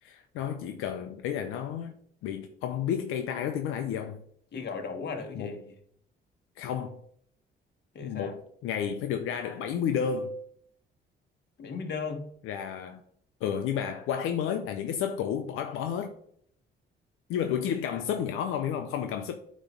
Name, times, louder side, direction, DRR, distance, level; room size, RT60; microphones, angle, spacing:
voice 1, 0.0-1.9 2.2-4.2 5.3-5.6 6.6-7.0 8.0-10.4 12.4-13.0 13.4-16.1 17.3-19.4, left 8 dB, 90° left, 0.6 m, -31 dB
voice 2, 4.5-5.6 7.9-8.3 11.6-12.2, left 5 dB, 55° left, 1.4 m, -36 dB
8.6 x 3.1 x 5.3 m
cardioid pair, 80°, 21 cm